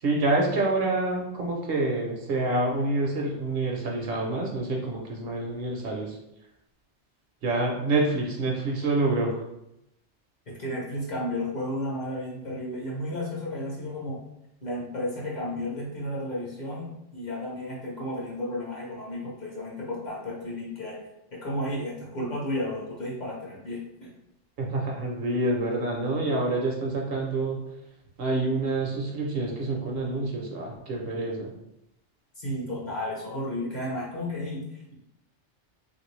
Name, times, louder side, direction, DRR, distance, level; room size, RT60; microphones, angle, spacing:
voice 1, 0.0-6.2 7.4-9.4 24.6-27.6 28.2-31.5, right 2 dB, 60° right, 0 dB, 0.7 m, -27 dB
voice 2, 10.5-14.2 14.6-21.0 21.3-24.1 32.4-34.9, left 1 dB, 45° left, -4 dB, 0.7 m, -33 dB
3.1 x 2.5 x 3.0 m, 0.85 s
omnidirectional pair, 1.2 m